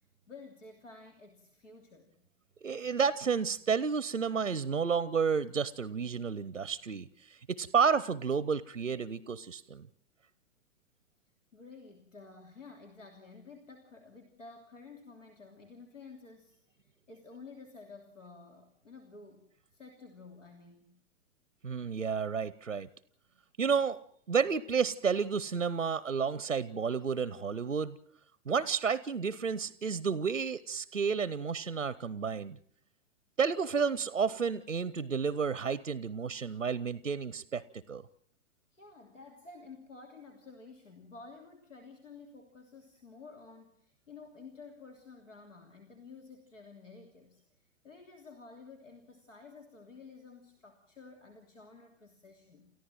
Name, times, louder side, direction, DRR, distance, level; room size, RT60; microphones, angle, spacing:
voice 1, 0.3-2.2 11.5-19.4 19.7-20.9 38.7-47.4 47.8-52.7, left 4 dB, 80° left, 4 dB, 3.1 m, -52 dB
voice 2, 2.6-9.9 21.6-22.9 23.6-24.0 24.3-28.0 28.5-32.6 33.4-37.6 37.9-38.0, right 6 dB, 90° right, 19 dB, 0.8 m, -31 dB
29.5 x 14.5 x 7.6 m, 0.65 s
figure-of-eight pair, 110°, 37 cm